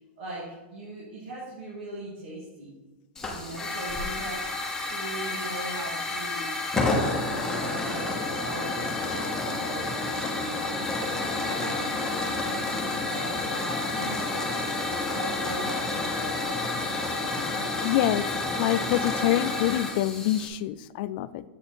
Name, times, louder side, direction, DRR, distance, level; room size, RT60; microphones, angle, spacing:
voice 1, 0.2-2.7 3.3-6.6 6.9-12.6 13.1-16.6, right 2 dB, 75° right, -6 dB, 2.2 m, -40 dB
Hiss / Fire, 3.2-20.5, left 2 dB, 10° left, 1.0 m, -30 dB
voice 2, 17.8-18.3 18.6-21.4, left 13 dB, 50° left, 16 dB, 0.3 m, -26 dB
7.5 x 5.2 x 4.3 m, 1.2 s
supercardioid pair, 150°, 6 cm